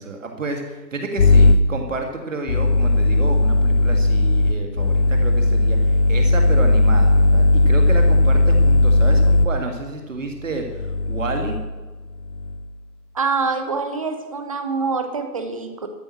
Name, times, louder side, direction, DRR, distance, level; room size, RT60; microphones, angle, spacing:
voice 1, 0.0-11.6, right 3 dB, 50° right, 3 dB, 1.9 m, -30 dB
sound 1, 1.2-1.6 2.5-9.5 10.5-11.7 12.2-12.6, left 2 dB, 45° left, 0.7 m, -16 dB
voice 2, 13.1-15.9, right 4 dB, 20° right, 7 dB, 0.9 m, -25 dB
13.0 x 9.2 x 6.4 m, 1.3 s
figure-of-eight pair, 145°, 50 cm